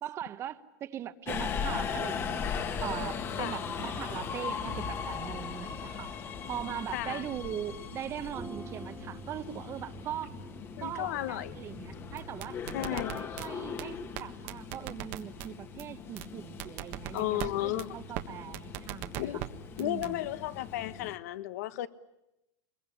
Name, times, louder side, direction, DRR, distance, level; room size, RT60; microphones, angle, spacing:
voice 1, 0.0-2.5 2.8-6.1 6.5-10.4 10.8-12.6 12.9-19.4 19.8-20.3, right 10 dB, 30° right, 1.1 m, -40 dB
Subway metro underground, 1.3-21.2, left 6 dB, 25° left, 1.5 m, -39 dB
voice 2, 6.9-7.2 10.8-11.6 12.7-13.2 17.1-17.9 19.2-19.4 19.8-21.9, left 15 dB, 70° left, 1.3 m, -33 dB
sound 1, 8.2-14.2, right 3 dB, 5° right, 1.9 m, -49 dB
sound 2, 12.2-13.5 13.8-13.9 14.2-14.3 14.5-15.5 15.8-15.9 16.2-16.3 16.6-17.5 17.8-17.9 18.2-18.3 18.5-19.5 19.8-20.1, right 15 dB, 50° right, 1.5 m, -37 dB
24.5 x 22.5 x 9.9 m
supercardioid pair, 155°, 9 cm